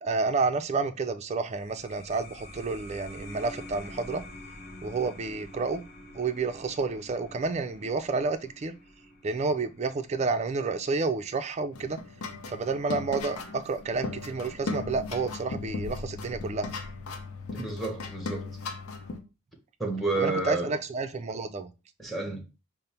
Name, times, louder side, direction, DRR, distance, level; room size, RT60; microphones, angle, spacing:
voice 1, 0.0-4.2 4.8-5.8 6.1-8.7 9.2-12.0 12.5-16.7 20.2-21.7, right 4 dB, 30° right, 0.4 m, -30 dB
sound 1, 1.4-12.5, left 1 dB, 45° left, 0.8 m, -48 dB
sound 2, 11.7-19.2, left 3 dB, 85° left, 0.6 m, -37 dB
voice 2, 17.5-18.6 19.8-20.7 22.0-22.4, right 3 dB, ahead, 0.9 m, -30 dB
5.2 x 2.0 x 4.3 m
head